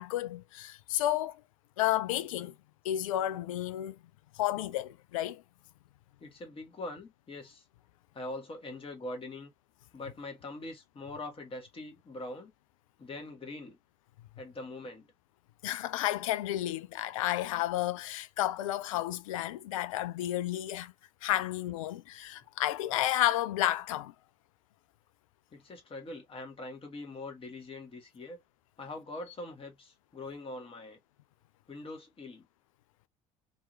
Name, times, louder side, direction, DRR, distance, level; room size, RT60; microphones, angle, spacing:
voice 1, 0.0-1.4 1.8-2.5 2.8-4.0 4.3-5.4 15.6-20.9 21.2-24.1, left 14 dB, 75° left, 0.4 m, -31 dB
voice 2, 6.2-7.7 8.1-9.5 9.9-12.5 13.0-13.8 14.4-15.1 25.5-28.4 28.8-31.0 31.7-32.5, left 2 dB, 30° left, 1.8 m, -43 dB
3.7 x 2.9 x 2.6 m
figure-of-eight pair, 55°, 17 cm